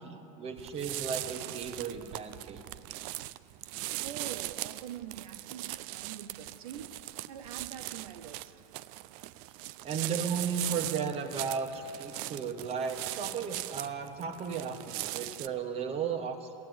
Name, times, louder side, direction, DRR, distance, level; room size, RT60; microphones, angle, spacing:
voice 1, 0.0-2.6 9.8-16.5, right 6 dB, 35° right, 6 dB, 1.2 m, -35 dB
sound 1, 0.6-15.5, right 17 dB, 55° right, 0.4 m, -40 dB
voice 2, 4.0-7.0 7.3-8.5, right 9 dB, 90° right, 8 dB, 0.7 m, -45 dB
14.0 x 8.7 x 9.3 m, 2.8 s
supercardioid pair, 120°, 18 cm